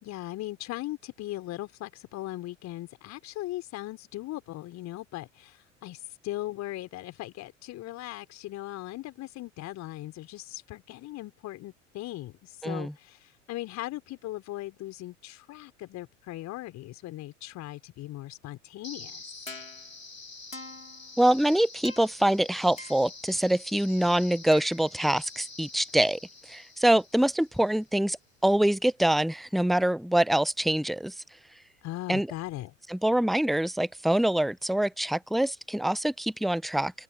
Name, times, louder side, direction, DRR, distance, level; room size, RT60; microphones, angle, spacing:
voice 1, 0.0-19.2 31.8-32.7, left 16 dB, 45° left, 4.1 m, -39 dB
sound 1, 18.8-27.9, left 3 dB, 85° left, 3.4 m, -45 dB
voice 2, 21.2-26.2 26.5-28.2 28.4-31.1 32.1-32.3 32.9-36.9, right 1 dB, ahead, 0.7 m, -25 dB
open air
figure-of-eight pair, 70°, 39 cm